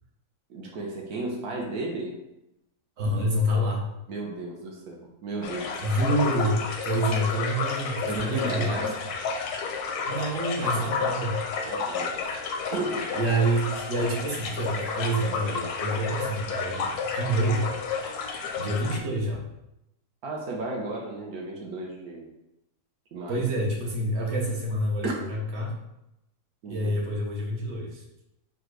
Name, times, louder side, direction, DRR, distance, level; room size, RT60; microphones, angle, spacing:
voice 1, 0.5-2.2 4.1-5.7 7.1-7.2 8.1-9.0 10.6-11.2 11.6-12.2 12.7-13.1 20.2-22.3 23.1-23.5 25.0-25.1 26.6-26.9, right 2 dB, 75° right, -1 dB, 1.2 m, -34 dB
voice 2, 3.0-3.9 5.8-8.8 10.1-11.3 13.1-16.9 17.1-17.8 18.6-19.4 23.3-25.7 26.7-28.0, right 1 dB, 50° right, -1 dB, 1.1 m, -27 dB
sound 1, 5.4-19.0, left 5 dB, 85° left, 1.1 m, -31 dB
4.1 x 2.2 x 4.6 m, 0.87 s
omnidirectional pair, 1.6 m